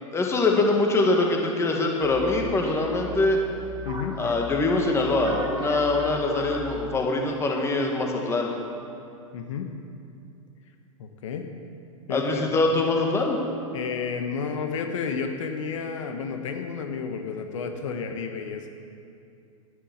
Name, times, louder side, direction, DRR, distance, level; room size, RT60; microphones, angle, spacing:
voice 1, 0.1-3.4 4.2-8.5 12.1-13.4, left 2 dB, 15° left, 1 dB, 1.7 m, -23 dB
sound 1, 2.0-7.1, equal, 25° right, 3.0 m, -37 dB
voice 2, 9.3-9.7 11.0-11.5 12.1-12.5 13.7-18.7, left 6 dB, 65° left, 5 dB, 1.1 m, -31 dB
11.0 x 8.4 x 7.1 m, 2.5 s
hypercardioid pair, 115°, 18 cm